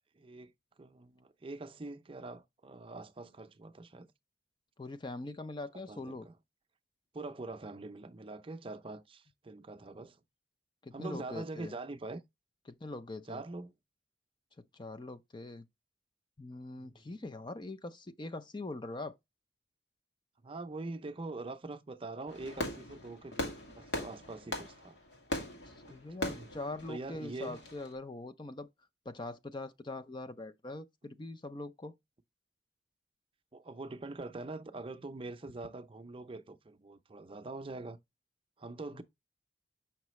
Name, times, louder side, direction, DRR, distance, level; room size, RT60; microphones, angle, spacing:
voice 1, 0.1-0.5 0.8-4.1 5.7-6.3 7.1-10.2 10.9-12.2 13.3-13.7 16.8-17.1 20.4-25.0 25.9-26.5 26.9-27.6 33.5-38.0 38.6-39.0, right 2 dB, 30° right, 0.6 m, -44 dB
voice 2, 4.8-6.3 10.8-11.7 12.7-13.4 14.7-15.6 16.4-19.2 25.7-28.7 29.1-31.9 38.9-39.0, left 2 dB, 25° left, 0.5 m, -42 dB
Fireworks, 22.3-27.9, left 1 dB, 75° left, 2.1 m, -40 dB
7.1 x 5.8 x 3.1 m
head